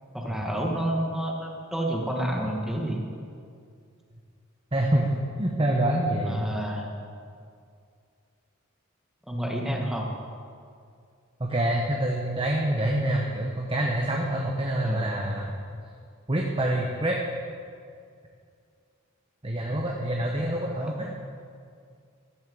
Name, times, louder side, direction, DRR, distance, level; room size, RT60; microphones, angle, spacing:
voice 1, 0.1-3.0 6.2-6.9 9.3-10.1 14.8-15.1, right 1 dB, ahead, -1 dB, 1.5 m, -29 dB
voice 2, 4.7-6.4 11.4-15.5 16.3-17.2 19.4-21.2, right 1 dB, 25° right, 0 dB, 1.1 m, -26 dB
14.0 x 7.4 x 7.6 m, 2.3 s
head